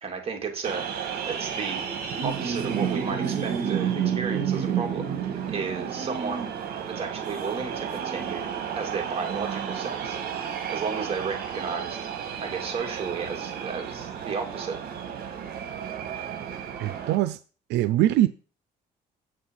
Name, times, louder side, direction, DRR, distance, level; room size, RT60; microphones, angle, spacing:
voice 1, 0.0-1.9 2.2-6.6 6.9-10.2 10.7-12.0 12.4-14.8, right 5 dB, 35° right, 3.0 m, -33 dB
sound 1, 0.6-17.2, right 8 dB, 60° right, 2.4 m, -31 dB
voice 2, 16.8-17.4 17.7-18.3, right 14 dB, 85° right, 0.5 m, -22 dB
8.2 x 6.5 x 5.6 m
cardioid pair, 110°, 17 cm